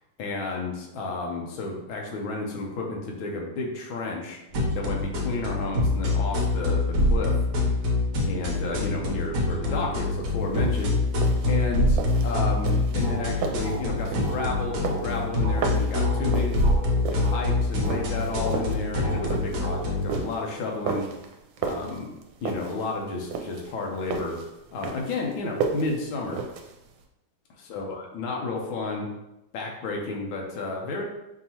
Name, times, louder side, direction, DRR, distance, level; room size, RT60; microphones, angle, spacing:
voice 1, 0.2-4.4 4.7-7.4 8.3-11.0 11.5-16.6 17.1-21.1 21.6-22.1 22.4-24.4 24.7-26.4 27.6-29.1 29.5-31.0, left 3 dB, 75° left, 0 dB, 1.6 m, -32 dB
sound 1, 4.5-20.2, left 2 dB, 65° right, 1.3 m, -25 dB
sound 2, 10.4-27.0, right 5 dB, 80° right, 1.4 m, -34 dB
5.1 x 2.8 x 2.9 m, 0.91 s
omnidirectional pair, 2.3 m